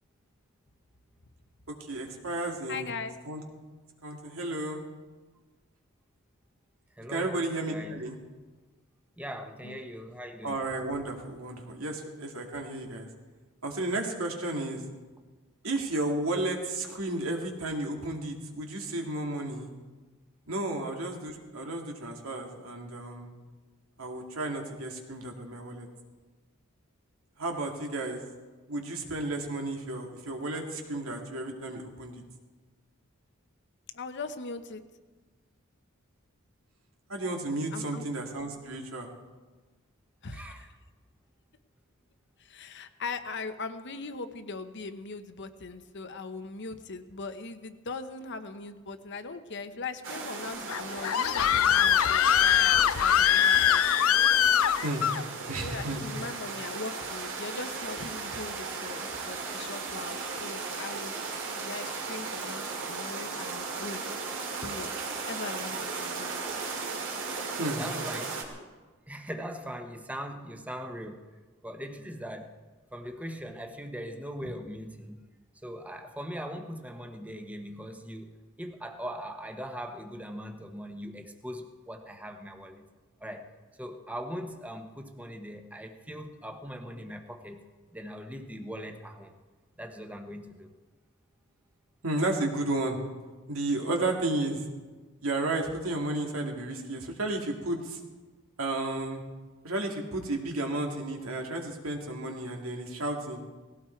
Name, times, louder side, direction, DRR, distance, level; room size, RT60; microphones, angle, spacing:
voice 1, 1.7-2.9 3.2-3.4 4.0-4.8 7.1-8.2 10.4-13.1 13.6-14.8 15.6-19.7 20.5-23.3 24.0-25.9 27.4-28.2 28.7-32.2 37.1-39.1 54.8-55.0 55.5-56.0 67.6-67.8 92.0-93.0 93.5-94.6 95.2-98.0 98.6-99.2 99.6-103.5, right 2 dB, 90° right, 2 dB, 2.4 m, -33 dB
voice 2, 2.7-3.1 9.6-9.8 33.9-34.8 37.7-38.1 40.2-40.7 42.4-53.8 55.6-61.1 61.6-64.0 64.6-64.9 65.3-66.4, left 3 dB, 60° left, 9 dB, 1.1 m, -40 dB
voice 3, 7.0-8.0 9.2-10.6 20.7-20.8 40.3-40.7 67.8-68.4 69.1-71.2 71.6-72.5 72.9-75.2 75.6-78.3 78.6-82.8 83.2-83.4 83.8-87.6 87.9-89.3 89.8-90.7, equal, 5° right, 5 dB, 1.2 m, -40 dB
sound 1, 50.0-68.4, right 4 dB, 65° right, 2.8 m, -36 dB
Screaming, 50.7-55.2, left 9 dB, 80° left, 0.5 m, -22 dB
18.5 x 16.5 x 4.6 m, 1.3 s
head